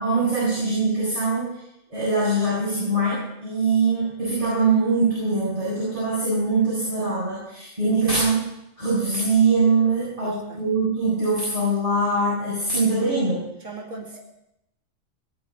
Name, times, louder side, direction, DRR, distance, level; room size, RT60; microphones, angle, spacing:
voice 1, 0.0-1.6 1.9-8.4 8.8-13.4, right 3 dB, 25° right, -9 dB, 7.7 m, -22 dB
voice 2, 10.2-10.6 13.6-14.2, right 3 dB, 75° right, 1 dB, 3.2 m, -39 dB
19.5 x 7.3 x 8.9 m, 0.83 s
omnidirectional pair, 1.3 m